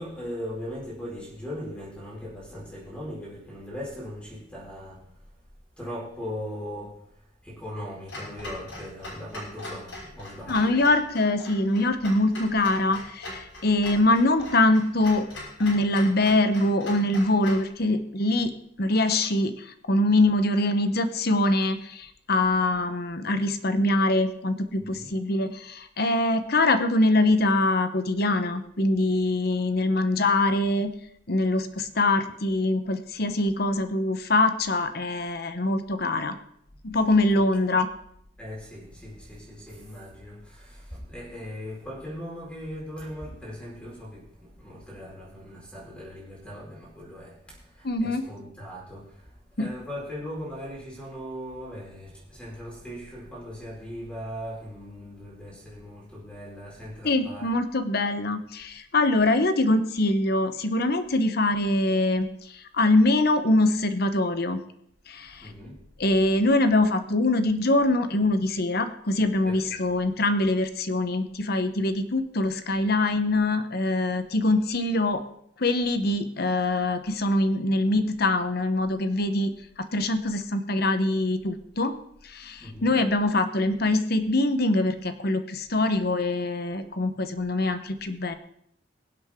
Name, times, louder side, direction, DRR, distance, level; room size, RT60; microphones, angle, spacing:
voice 1, 0.0-5.0 5.8-7.0 7.4-10.7 24.8-25.1 37.3-37.4 38.4-49.3 49.6-57.5 65.4-65.8 69.4-69.9 82.6-83.0, equal, 5° left, -5 dB, 4.8 m, -39 dB
Clock, 8.1-17.7, left 2 dB, 80° left, 5.9 m, -41 dB
voice 2, 10.5-15.2 15.6-18.5 18.8-30.9 31.3-36.4 36.8-37.9 47.8-48.3 49.6-49.7 57.0-64.6 65.1-65.5 66.0-75.2 75.6-79.5 79.9-81.9 82.2-88.3, left 2 dB, 55° left, 9 dB, 1.1 m, -23 dB
23.0 x 7.9 x 3.7 m, 0.71 s
head